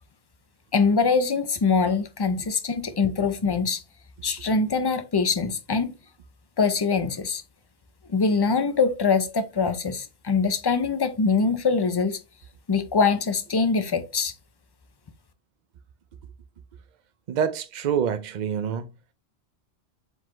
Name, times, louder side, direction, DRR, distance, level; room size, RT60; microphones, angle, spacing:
voice 1, 0.7-3.8 4.2-5.9 6.6-7.4 8.1-12.2 12.7-14.3, left 4 dB, 45° left, 0.3 m, -23 dB
voice 2, 17.3-18.9, right 8 dB, 50° right, 0.6 m, -26 dB
4.6 x 3.9 x 2.5 m
omnidirectional pair, 1.1 m